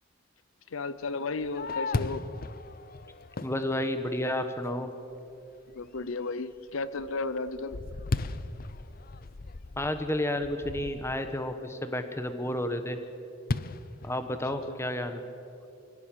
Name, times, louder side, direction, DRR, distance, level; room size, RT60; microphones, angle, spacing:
voice 1, 0.7-2.3 5.7-7.8, left 3 dB, 90° left, 15 dB, 0.7 m, -33 dB
Fireworks, 1.1-4.6 5.1-5.2 5.7-6.1 6.5-11.4 13.5-14.8, left 3 dB, 45° left, 0.6 m, -36 dB
voice 2, 3.4-4.9 9.8-13.0 14.0-15.2, left 1 dB, 15° left, 8 dB, 1.2 m, -31 dB
24.0 x 16.5 x 7.5 m, 2.9 s
head